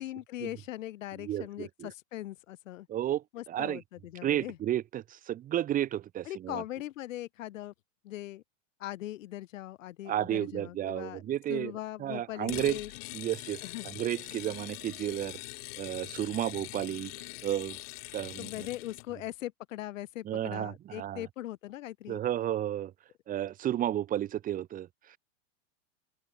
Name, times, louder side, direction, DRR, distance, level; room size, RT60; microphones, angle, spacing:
voice 1, 0.0-2.9 3.3-4.6 6.3-7.7 8.0-8.4 8.8-11.2 11.5-12.9 13.6-13.9 18.4-22.2, left 14 dB, 80° left, 3.8 m, -40 dB
voice 2, 1.2-1.9 2.9-3.8 4.2-6.6 10.0-11.7 12.0-12.8 13.1-15.4 15.8-17.8 18.1-18.7 20.2-21.2 22.1-22.9 23.3-25.2, right 12 dB, 20° right, 1.4 m, -32 dB
sound 1, 12.5-19.1, left 28 dB, 50° left, 3.6 m, -43 dB
open air
supercardioid pair, 165°, 38 cm